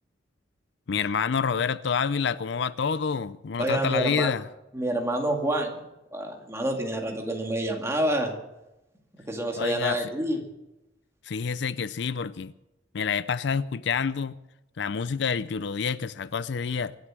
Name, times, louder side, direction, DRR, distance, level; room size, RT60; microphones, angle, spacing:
voice 1, 0.9-4.4 9.6-10.1 11.2-12.5 12.9-14.4 14.8-16.9, left 6 dB, 60° left, 0.5 m, -28 dB
voice 2, 3.6-4.3 4.7-5.8 6.1-8.3 9.3-10.4, right 1 dB, 15° right, 2.2 m, -27 dB
24.0 x 8.0 x 7.4 m
head